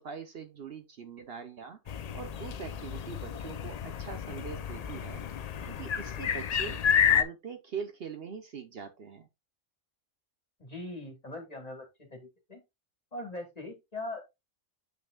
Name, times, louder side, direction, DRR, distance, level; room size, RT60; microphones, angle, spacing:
voice 1, 0.0-5.2 5.6-6.8 7.1-9.3, right 6 dB, 55° right, 0.9 m, -42 dB
sound 1, 1.9-7.2, left 8 dB, 75° left, 0.3 m, -30 dB
voice 2, 10.6-12.6 13.1-14.2, left 2 dB, 30° left, 1.9 m, -41 dB
7.8 x 5.8 x 2.3 m
omnidirectional pair, 1.3 m